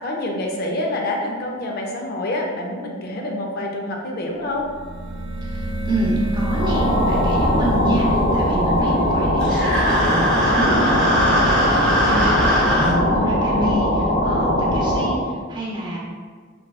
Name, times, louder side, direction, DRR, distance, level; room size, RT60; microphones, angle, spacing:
voice 1, 0.0-4.7, left 1 dB, 50° left, 0 dB, 0.5 m, -27 dB
sound 1, 4.5-11.2, right 1 dB, 90° right, 0.5 m, -28 dB
voice 2, 5.4-15.2 15.5-16.0, right 1 dB, 25° right, -5 dB, 0.7 m, -27 dB
sound 2, 6.4-15.3, left 1 dB, 85° left, 0.7 m, -20 dB
sound 3, 9.4-12.9, equal, 5° left, 0.9 m, -21 dB
4.0 x 2.2 x 2.2 m, 1.5 s
head